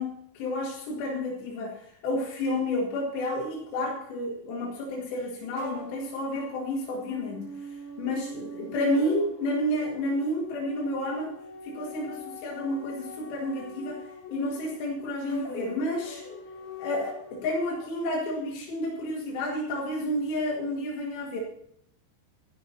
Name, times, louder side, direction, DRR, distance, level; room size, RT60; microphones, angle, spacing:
voice 1, 0.0-11.4 11.6-16.3 16.8-21.4, left 1 dB, 90° left, -2 dB, 4.4 m, -30 dB
sound 1, 5.6-17.9, left 1 dB, 50° left, 3.9 m, -43 dB
12.5 x 11.5 x 4.2 m, 0.73 s
omnidirectional pair, 4.8 m